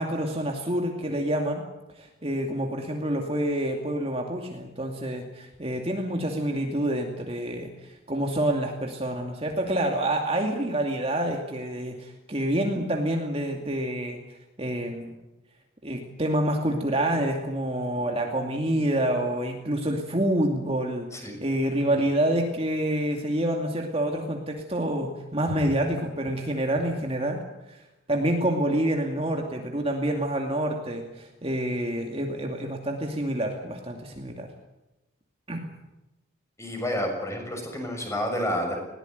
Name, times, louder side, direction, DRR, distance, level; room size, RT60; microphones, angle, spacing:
voice 1, 0.0-1.7 2.0-14.2 14.6-15.1 15.8-27.4 27.7-27.8 28.1-34.5 35.5-35.7, right 1 dB, 30° right, 2 dB, 2.5 m, -27 dB
voice 2, 21.1-21.4 36.6-38.8, equal, 15° left, 3 dB, 6.5 m, -29 dB
21.0 x 18.0 x 9.4 m, 0.99 s
head